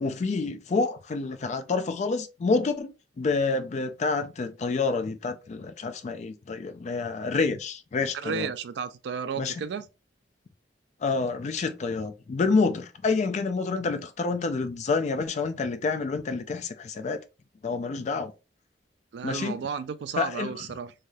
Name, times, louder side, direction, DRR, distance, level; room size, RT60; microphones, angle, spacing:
voice 1, 0.0-2.9 3.2-8.5 9.4-9.5 11.0-17.2 17.6-18.3 19.2-19.6 20.2-20.6, left 4 dB, 40° left, 0.3 m, -28 dB
voice 2, 8.1-9.8 19.1-20.9, right 6 dB, 65° right, 0.3 m, -33 dB
3.3 x 2.6 x 2.2 m
head